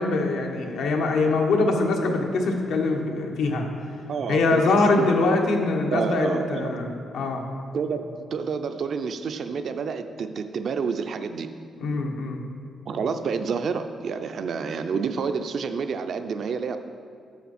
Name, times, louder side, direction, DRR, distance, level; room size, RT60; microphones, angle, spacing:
voice 1, 0.0-3.7 4.3-7.4 11.8-12.4, left 3 dB, 90° left, 1 dB, 1.1 m, -23 dB
voice 2, 4.1-4.6 5.0-5.1 5.9-7.0 7.7-8.0 8.3-11.5 12.9-16.8, right 5 dB, 60° right, 8 dB, 0.5 m, -29 dB
10.0 x 6.8 x 4.2 m, 2.3 s
cardioid pair, 120°, 0 cm